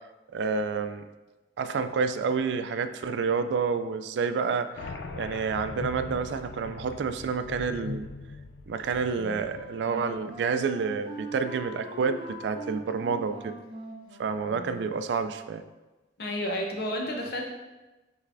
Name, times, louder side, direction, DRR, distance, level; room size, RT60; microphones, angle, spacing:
voice 1, 0.3-1.1 1.6-4.9 5.2-8.1 8.7-13.5 14.2-15.6, right 5 dB, 75° right, 10 dB, 0.3 m, -29 dB
sound 1, 4.8-10.0, left 3 dB, 80° left, 0.4 m, -41 dB
Wind instrument woodwind instrument, 9.1-15.0, right 1 dB, 30° right, 0.7 m, -42 dB
voice 2, 16.2-17.4, left 1 dB, 60° left, 1 dB, 0.7 m, -31 dB
6.3 x 3.2 x 2.5 m, 1.1 s
head